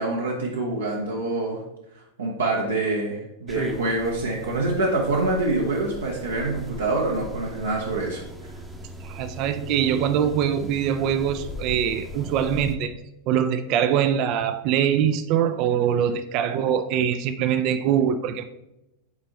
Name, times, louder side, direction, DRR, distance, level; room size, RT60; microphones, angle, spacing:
voice 1, 0.0-1.6 1.9-8.5, right 2 dB, 70° right, 1.0 m, -26 dB
sound 1, 3.5-12.8, equal, 5° right, 0.8 m, -38 dB
voice 2, 9.0-12.9 13.3-18.4, right 9 dB, 40° right, 0.4 m, -23 dB
8.1 x 4.4 x 3.0 m
figure-of-eight pair, 90°, 0 cm